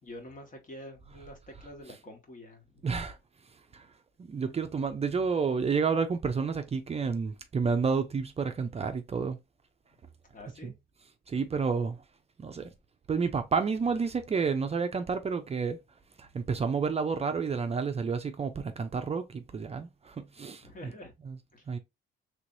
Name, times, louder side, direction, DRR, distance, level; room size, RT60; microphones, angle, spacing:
voice 1, 0.0-2.9 10.3-10.7 20.6-21.1 21.5-21.7, left 1 dB, 40° left, 1.5 m, -47 dB
voice 2, 2.8-3.2 3.7-3.9 4.3-9.4 10.6-10.7 11.3-12.0 12.4-12.7 13.1-15.8 16.2-20.6 21.3-21.4 21.7-21.8, right 5 dB, 30° right, 0.5 m, -30 dB
3.4 x 3.1 x 2.6 m
cardioid pair, 90°, 20 cm